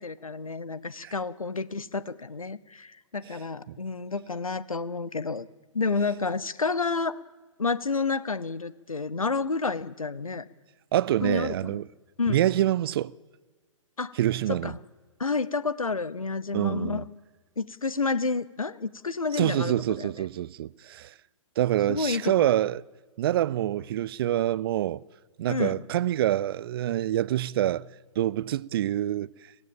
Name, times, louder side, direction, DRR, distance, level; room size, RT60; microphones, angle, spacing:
voice 1, 0.0-5.5 5.7-7.2 7.6-10.4 11.2-11.8 12.2-12.4 14.0-14.1 14.6-14.8 15.2-17.0 17.6-20.1 21.9-22.5 25.5-25.8, left 4 dB, 85° left, 0.8 m, -30 dB
voice 2, 10.9-11.9 12.3-13.1 14.2-14.7 16.5-17.0 19.3-21.1 21.6-22.8 23.2-25.0 25.4-27.9 28.2-29.3, right 12 dB, 45° right, 0.5 m, -26 dB
23.5 x 17.0 x 7.3 m
figure-of-eight pair, 120°, 17 cm